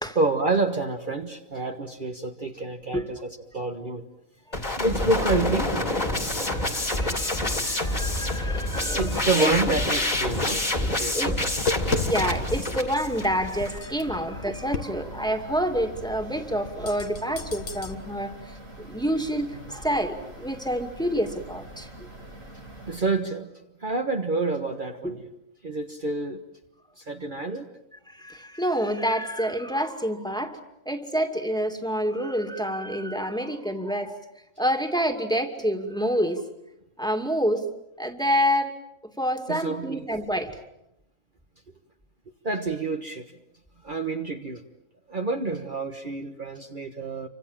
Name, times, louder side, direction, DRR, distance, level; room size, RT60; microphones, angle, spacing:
voice 1, 0.1-4.0 4.8-6.1 8.9-11.4 14.1-14.3 22.9-23.5 23.8-25.3 25.6-26.4 27.0-27.7 39.5-40.0 42.4-43.3 43.8-44.6 45.1-47.3, right 3 dB, 40° right, 3 dB, 1.5 m, -28 dB
sound 1, 4.5-13.8, left 1 dB, 30° left, 2.7 m, -27 dB
sound 2, 6.2-23.0, right 1 dB, 85° right, 7.3 m, -44 dB
voice 2, 6.4-9.5 11.1-11.3 12.0-18.5 18.9-22.1 25.0-25.1 28.1-30.6 30.9-34.2 34.6-36.4 37.0-37.7 38.0-38.7 39.2-40.6, equal, 5° left, 4 dB, 2.4 m, -28 dB
Tap, 11.3-17.9, left 3 dB, 75° left, 2.0 m, -35 dB
29.0 x 25.5 x 7.5 m, 0.84 s
omnidirectional pair, 1.3 m